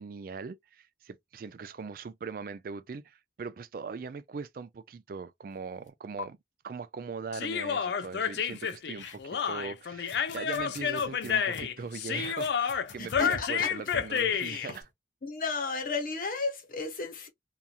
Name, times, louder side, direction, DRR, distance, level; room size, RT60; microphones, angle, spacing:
voice 1, 0.0-6.4 6.6-14.9, right 5 dB, 50° right, 0.3 m, -40 dB
sound 1, 5.9-6.0 6.2-6.3 8.5-9.5 9.9-14.9, left 4 dB, 90° left, 0.7 m, -46 dB
Human voice, 7.3-14.7, left 7 dB, 65° left, 0.4 m, -30 dB
voice 2, 13.0-13.7 14.4-14.7 15.2-17.3, left 4 dB, 50° left, 0.8 m, -34 dB
2.9 x 2.4 x 2.4 m
head